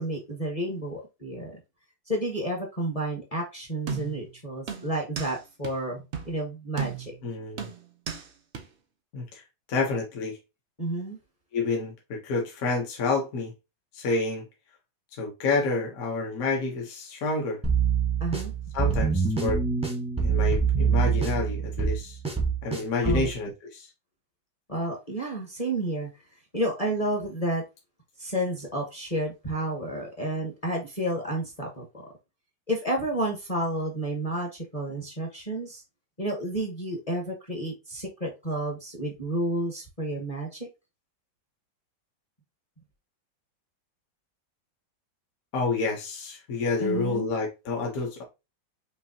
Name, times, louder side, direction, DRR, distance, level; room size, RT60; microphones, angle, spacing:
voice 1, 0.0-1.6 2.1-7.1 10.8-11.2 18.2-18.5 23.0-23.3 24.7-26.1 26.5-27.6 28.2-32.1 32.7-35.8 36.2-40.7 46.8-47.3, right 1 dB, 25° left, 0.9 m, -31 dB
sound 1, 3.9-4.3 4.7-5.4 5.6-5.7 6.1-6.3 6.8-7.2 7.6-8.3 8.5-8.6, right 6 dB, 85° right, 0.5 m, -34 dB
voice 2, 7.2-7.7 9.1-9.4 9.7-10.4 11.5-13.5 13.9-14.4 15.1-17.6 18.7-19.6 20.2-22.2 22.6-23.9 45.5-48.2, left 3 dB, 55° left, 1.3 m, -29 dB
sound 2, 17.6-23.3, right 6 dB, 5° right, 0.6 m, -25 dB
5.5 x 2.9 x 2.7 m
omnidirectional pair, 2.1 m